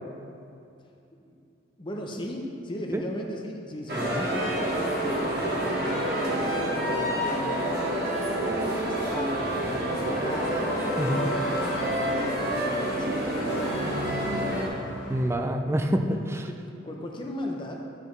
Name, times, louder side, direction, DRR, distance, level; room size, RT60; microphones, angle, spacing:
voice 1, 1.8-10.6 11.2-14.1 16.5-18.0, left 1 dB, 25° left, 0 dB, 0.7 m, -38 dB
sound 1, 3.9-14.7, right 1 dB, 55° right, 1.4 m, -28 dB
voice 2, 4.0-4.3 11.0-11.3 15.1-16.5, right 1 dB, 15° right, 5 dB, 0.4 m, -27 dB
sound 2, 8.5-15.4, left 1 dB, 70° left, 0.8 m, -41 dB
11.5 x 5.1 x 3.2 m, 2.5 s
head